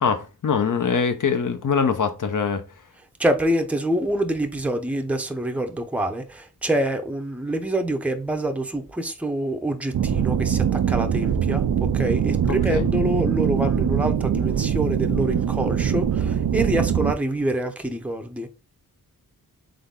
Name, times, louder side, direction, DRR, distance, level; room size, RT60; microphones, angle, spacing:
voice 1, 0.0-2.6 12.5-12.8, left 6 dB, 55° left, 0.9 m, -23 dB
voice 2, 3.2-18.5, right 1 dB, 5° right, 0.7 m, -26 dB
sound 1, 9.9-17.1, right 8 dB, 60° right, 0.5 m, -22 dB
3.9 x 3.3 x 3.7 m
cardioid pair, 55°, 36 cm